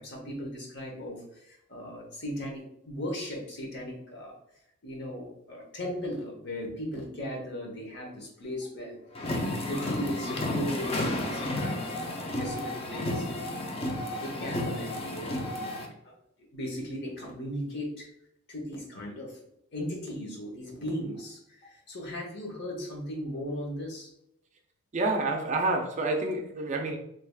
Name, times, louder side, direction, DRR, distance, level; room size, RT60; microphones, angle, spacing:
voice 1, 0.0-4.3 4.8-9.2 9.6-13.4 14.2-15.4 16.0-16.1 16.4-18.1 18.5-19.4 19.7-24.1, equal, 55° left, 0 dB, 0.9 m, -37 dB
sound 1, 9.2-15.9, left 1 dB, 30° left, 0.4 m, -32 dB
voice 2, 24.9-27.0, right 2 dB, 35° right, 3 dB, 0.4 m, -28 dB
3.4 x 3.3 x 2.3 m, 0.79 s
head